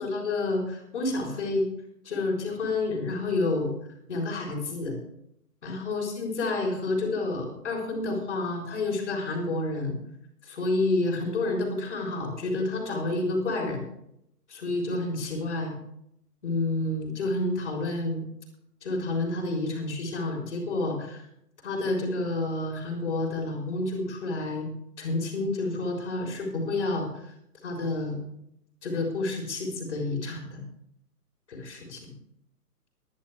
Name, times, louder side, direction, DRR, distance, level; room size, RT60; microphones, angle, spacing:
voice 1, 0.0-1.7 2.0-3.7 4.1-5.0 5.6-10.0 10.4-13.8 14.5-15.7 16.4-18.2 18.8-21.2 21.6-24.7 25.0-27.3 27.6-28.2 28.8-30.6 31.5-32.0, left 2 dB, 45° left, 0 dB, 4.0 m, -29 dB
22.5 x 9.5 x 3.4 m, 0.76 s
figure-of-eight pair, 135°, 48 cm